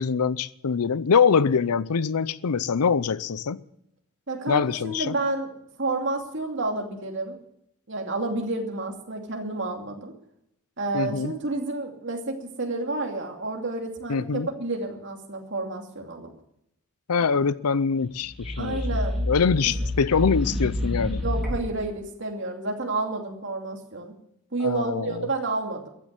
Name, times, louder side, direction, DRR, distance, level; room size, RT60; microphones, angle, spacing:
voice 1, 0.0-3.6 4.5-5.1 10.9-11.3 14.1-14.5 17.1-18.8 19.3-21.2 24.6-25.3, left 5 dB, 90° left, 0.6 m, -24 dB
voice 2, 4.3-5.5 5.8-7.4 7.9-10.1 10.8-16.3 17.3-17.4 18.6-19.3 19.6-19.8 21.2-24.2 24.5-25.9, right 2 dB, 55° right, 2.7 m, -30 dB
sound 1, 18.1-21.8, left 1 dB, ahead, 3.5 m, -28 dB
15.0 x 10.5 x 8.2 m
head